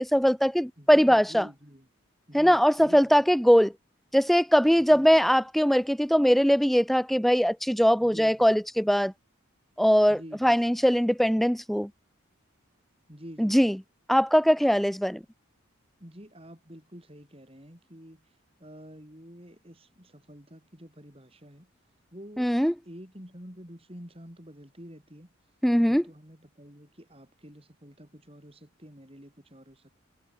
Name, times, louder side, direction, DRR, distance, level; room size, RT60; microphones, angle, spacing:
voice 1, 0.0-1.5 2.3-3.7 4.1-9.1 9.8-11.9 13.4-13.8 14.1-15.2 22.4-22.7 25.6-26.0, equal, ahead, 0.5 m, -21 dB
voice 2, 0.8-1.9 2.3-3.2 4.9-5.2 8.0-8.5 10.1-10.8 13.1-13.8 16.0-18.2 18.6-21.7 22.1-22.5 22.8-25.3 25.8-30.0, equal, 25° right, 6.6 m, -48 dB
head